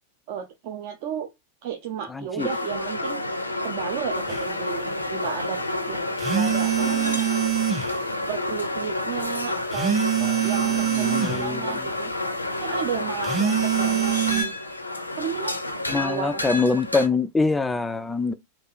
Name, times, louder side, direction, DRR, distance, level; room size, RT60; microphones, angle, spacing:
voice 1, 0.3-1.3 1.6-3.2 3.6-5.6 5.9-7.5 8.3-10.0 10.4-12.1 12.6-14.5 15.1-15.6 16.0-16.7, right 8 dB, 50° right, 0.6 m, -33 dB
voice 2, 2.1-2.5 10.2-10.5 10.8-11.9 15.9-18.3, left 4 dB, 10° left, 0.3 m, -25 dB
sound 1, 2.4-17.1, left 2 dB, 85° left, 0.6 m, -29 dB
sound 2, 4.3-4.4 6.2-8.0 9.7-11.5 13.2-14.4, right 10 dB, 25° right, 1.1 m, -24 dB
3.2 x 2.5 x 4.3 m
figure-of-eight pair, 90°, 0 cm